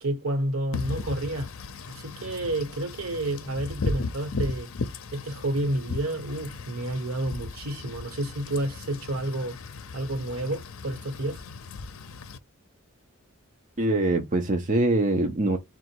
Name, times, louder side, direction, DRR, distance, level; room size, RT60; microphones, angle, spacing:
voice 1, 0.0-1.5 1.9-4.7 5.1-9.6 9.9-11.4, right 1 dB, 70° right, 1.3 m, -30 dB
Wind / Rain, 0.7-12.4, left 3 dB, 65° left, 0.5 m, -36 dB
voice 2, 13.8-15.6, right 2 dB, 35° right, 0.6 m, -23 dB
3.9 x 2.4 x 4.4 m
head